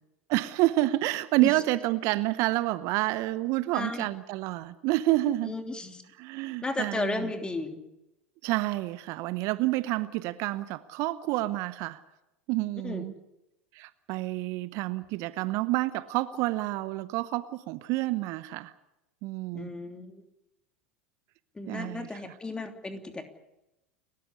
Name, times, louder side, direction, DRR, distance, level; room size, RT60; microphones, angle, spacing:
voice 1, 0.3-5.5 6.2-7.3 8.4-12.0 12.5-13.1 13.7-18.7 19.2-19.7 21.7-22.3, right 18 dB, 50° right, 16 dB, 0.9 m, -29 dB
voice 2, 3.7-4.1 5.4-6.0 6.6-7.8 12.8-13.1 19.5-20.2 21.5-23.3, left 3 dB, 15° left, 6 dB, 3.1 m, -34 dB
29.5 x 13.5 x 8.4 m, 0.92 s
figure-of-eight pair, 80°, 7 cm